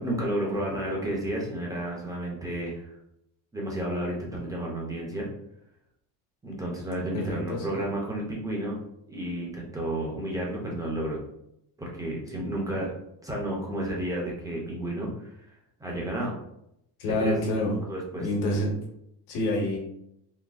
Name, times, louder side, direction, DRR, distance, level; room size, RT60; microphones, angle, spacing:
voice 1, 0.0-2.9 3.5-5.3 6.4-8.7 9.1-11.2 11.8-12.9 13.2-15.3 15.8-16.3 17.2-17.4 17.9-18.3, right 1 dB, 10° right, -3 dB, 0.3 m, -31 dB
voice 2, 7.0-7.6 17.0-17.8 18.2-18.7 19.3-19.8, left 1 dB, 80° left, 0 dB, 1.1 m, -27 dB
3.9 x 2.7 x 2.3 m, 0.78 s
cardioid pair, 175°, 40 cm